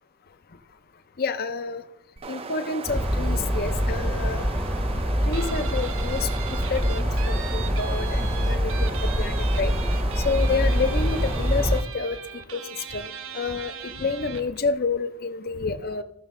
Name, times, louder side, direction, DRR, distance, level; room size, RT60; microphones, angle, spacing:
voice 1, 1.2-1.8 2.3-4.5 5.3-6.3 6.7-9.7 10.2-12.2 12.5-12.6 12.9-16.0, left 4 dB, 45° left, 10 dB, 0.6 m, -29 dB
sound 1, 2.2-11.8, right 4 dB, 30° right, 0.4 m, -37 dB
sound 2, 2.9-11.8, equal, 5° left, 0.8 m, -25 dB
Guitar, 5.3-14.6, right 8 dB, 70° right, 0.8 m, -39 dB
14.0 x 6.3 x 3.7 m, 0.77 s
head